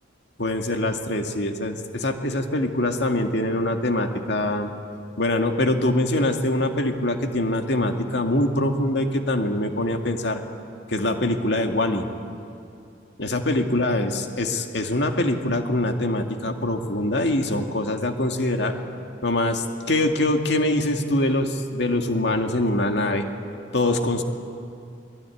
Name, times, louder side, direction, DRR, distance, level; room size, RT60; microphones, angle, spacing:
voice 1, 0.4-4.7 5.2-10.4 10.9-12.1 13.2-14.1 14.4-18.8 19.2-23.2 23.7-24.2, left 1 dB, 65° left, 4 dB, 2.2 m, -23 dB
28.5 x 21.0 x 9.9 m, 2.5 s
head